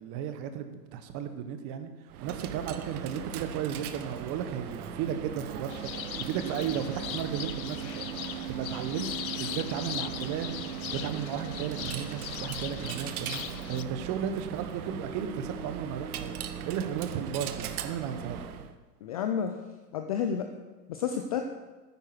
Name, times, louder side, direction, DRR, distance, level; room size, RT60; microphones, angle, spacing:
voice 1, 0.0-1.9 2.2-8.1 8.5-9.1 9.4-10.6 10.9-13.4 13.7-18.4, right 8 dB, 35° right, 8 dB, 1.3 m, -34 dB
Coin (dropping), 2.1-18.7, right 8 dB, 60° right, 1.1 m, -39 dB
sound 1, 5.7-13.8, left 11 dB, 90° left, 0.7 m, -40 dB
voice 2, 19.0-19.5 19.9-20.5 20.9-21.4, left 8 dB, 25° left, 6 dB, 0.3 m, -30 dB
9.8 x 9.1 x 6.0 m, 1.3 s
hypercardioid pair, 120°, 50 cm